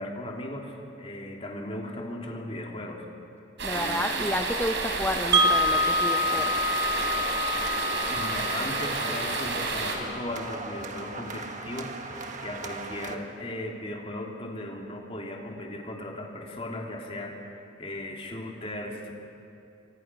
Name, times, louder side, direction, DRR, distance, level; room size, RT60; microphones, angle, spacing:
voice 1, 0.0-3.0 3.7-4.4 8.1-19.1, left 1 dB, 30° left, 0 dB, 2.9 m, -37 dB
voice 2, 3.6-6.6, left 1 dB, 10° left, 5 dB, 0.7 m, -31 dB
sound 1, 3.6-10.0, right 3 dB, 65° right, 3.8 m, -30 dB
Wind chime, 5.3-11.3, left 1 dB, 20° right, 1.0 m, -28 dB
sound 2, 5.5-13.2, right 3 dB, 40° right, 1.5 m, -40 dB
28.5 x 25.0 x 6.1 m, 2.8 s
head